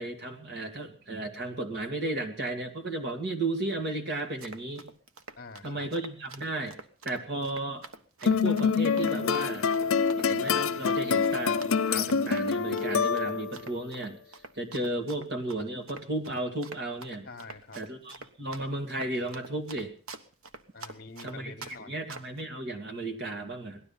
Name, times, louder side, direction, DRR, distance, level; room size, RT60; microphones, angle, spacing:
voice 1, 0.0-4.9 5.6-6.8 7.0-7.8 8.2-9.7 10.2-14.2 14.6-17.3 17.8-19.9 21.2-21.5 21.9-23.8, right 2 dB, 50° right, 4 dB, 2.4 m, -34 dB
Run, 4.2-21.8 22.1-22.4, right 3 dB, 90° right, 1.3 m, -45 dB
voice 2, 5.4-5.9 17.2-17.8 20.7-21.9, left 3 dB, 45° left, 10 dB, 1.4 m, -46 dB
sound 1, 8.3-13.6, left 5 dB, 80° left, 0.6 m, -26 dB
18.0 x 12.5 x 5.7 m, 0.39 s
head